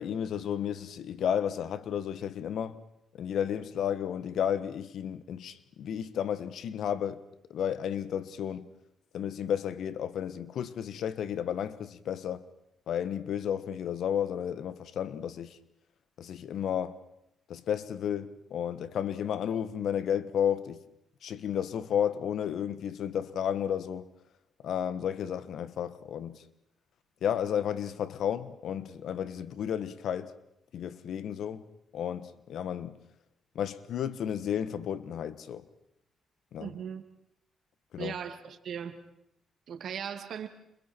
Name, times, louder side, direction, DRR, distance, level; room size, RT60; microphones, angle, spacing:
voice 1, 0.0-2.8 3.1-7.2 7.5-8.7 9.1-12.4 12.9-15.6 16.2-17.0 17.5-20.8 21.2-24.1 24.6-26.4 27.2-30.3 30.7-31.7 31.9-33.0 33.5-35.6 36.5-36.7 37.9-38.2, left 9 dB, 75° left, 1.4 m, -32 dB
voice 2, 36.6-37.0 38.0-39.0 39.7-40.5, right 8 dB, 70° right, 2.5 m, -38 dB
30.0 x 27.5 x 4.6 m
cardioid pair, 65°, 0 cm